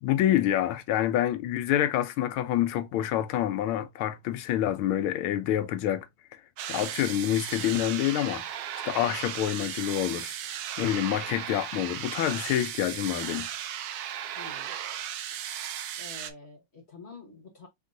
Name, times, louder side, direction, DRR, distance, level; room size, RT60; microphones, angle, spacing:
voice 1, 0.0-6.1 6.7-8.6 8.9-13.5, left 12 dB, 85° left, 1.5 m, -27 dB
sound 1, 6.6-16.3, right 10 dB, 90° right, 0.8 m, -36 dB
voice 2, 14.4-14.7 15.9-17.7, left 3 dB, 40° left, 1.1 m, -47 dB
4.6 x 3.7 x 2.6 m
omnidirectional pair, 2.3 m